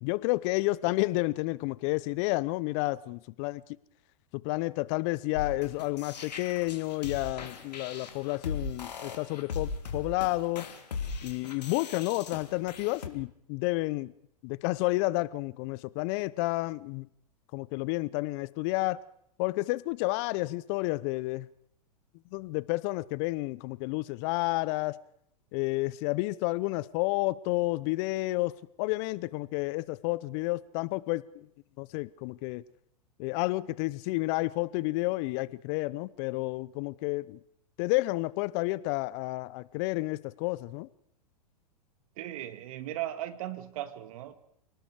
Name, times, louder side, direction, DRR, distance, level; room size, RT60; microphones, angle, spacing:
voice 1, 0.0-3.6 4.3-10.7 11.2-14.1 14.4-17.1 17.5-19.0 19.4-21.5 22.3-25.0 25.5-31.5 31.8-32.6 33.2-37.4 37.8-40.9, left 21 dB, 45° left, 0.8 m, -30 dB
sound 1, 5.3-13.1, left 5 dB, 80° left, 3.1 m, -39 dB
voice 2, 42.2-44.4, right 13 dB, 60° right, 2.1 m, -37 dB
28.0 x 19.5 x 4.9 m
hypercardioid pair, 105°, 21 cm